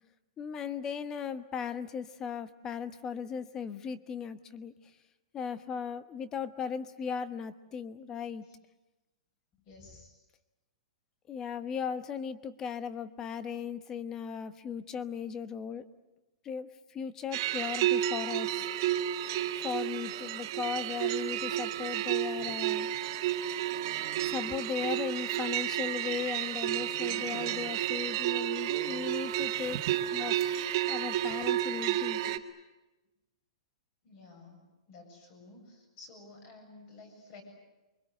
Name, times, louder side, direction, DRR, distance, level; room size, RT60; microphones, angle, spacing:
voice 1, 0.4-4.7 5.3-8.4 11.3-15.8 16.4-18.5 19.5-22.9 24.2-29.8 30.1-30.6 30.9-32.4, left 7 dB, 15° left, 13 dB, 1.1 m, -37 dB
voice 2, 9.6-10.2 34.0-37.4, left 3 dB, 35° left, 4 dB, 7.6 m, -53 dB
sound 1, 17.3-32.4, right 12 dB, 40° right, 1.9 m, -31 dB
28.5 x 24.0 x 7.9 m, 1.1 s
hypercardioid pair, 165°, 3 cm